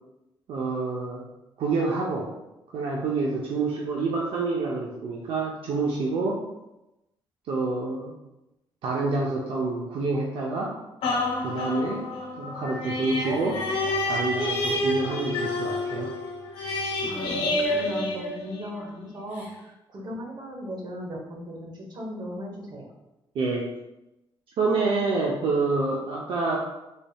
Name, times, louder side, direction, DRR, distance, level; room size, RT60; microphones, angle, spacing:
voice 1, 0.5-1.2 1.6-2.3 2.7-6.4 7.5-8.1 8.8-10.7 11.4-12.0 12.4-13.6 14.1-16.1 23.3-23.7 24.6-26.6, right 3 dB, 75° right, -3 dB, 0.5 m, -27 dB
sound 1, 11.0-18.9 19.4-19.5, left 1 dB, 90° left, 0.9 m, -28 dB
voice 2, 17.1-22.9, equal, 50° right, -1 dB, 0.9 m, -37 dB
4.1 x 3.4 x 2.2 m, 0.95 s
cardioid pair, 130°, 9 cm